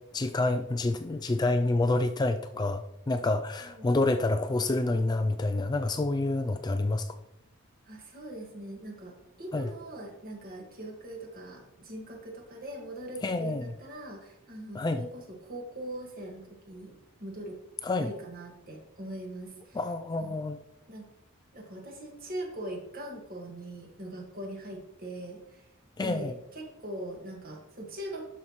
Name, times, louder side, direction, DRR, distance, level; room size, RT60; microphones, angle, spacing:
voice 1, 0.1-7.1 9.5-9.7 13.2-13.7 14.7-15.0 17.8-18.1 19.7-20.6 26.0-26.3, left 2 dB, 20° left, 0.3 m, -28 dB
voice 2, 7.9-17.6 18.0-19.8 20.2-20.4 20.9-21.0 21.5-25.7 26.0-28.2, right 1 dB, 45° right, 1.8 m, -41 dB
12.0 x 5.6 x 3.1 m
head